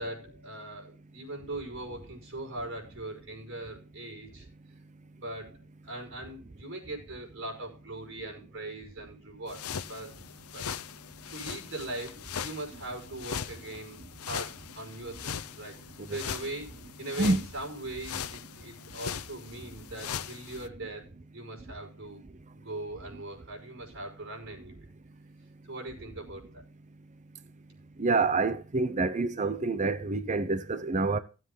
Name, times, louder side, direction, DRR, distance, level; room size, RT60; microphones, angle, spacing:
voice 1, 0.0-4.5 5.1-5.6 5.8-10.2 10.5-10.7 11.3-15.8 16.1-16.7 17.0-24.9 25.7-26.6, right 2 dB, 65° right, 5.7 m, -40 dB
sound 1, 9.5-20.7, left 8 dB, 90° left, 0.8 m, -40 dB
voice 2, 28.0-31.2, right 3 dB, 35° right, 0.8 m, -27 dB
17.0 x 7.8 x 3.9 m
head